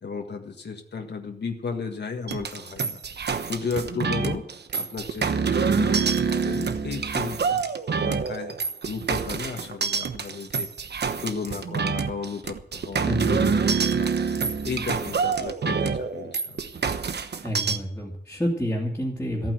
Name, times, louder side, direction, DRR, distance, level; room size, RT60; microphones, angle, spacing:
voice 1, 0.0-3.0 3.5-4.4 4.7-7.6 8.0-8.6 8.8-10.7 11.2-14.1 14.6-16.7, left 5 dB, 70° left, 3 dB, 1.6 m, -34 dB
sound 1, 2.3-17.8, right 5 dB, 70° right, 1.1 m, -26 dB
voice 2, 13.0-13.8 17.4-19.5, equal, 10° left, -4 dB, 2.4 m, -29 dB
14.5 x 9.2 x 7.9 m, 0.70 s
wide cardioid pair, 145°, 18 cm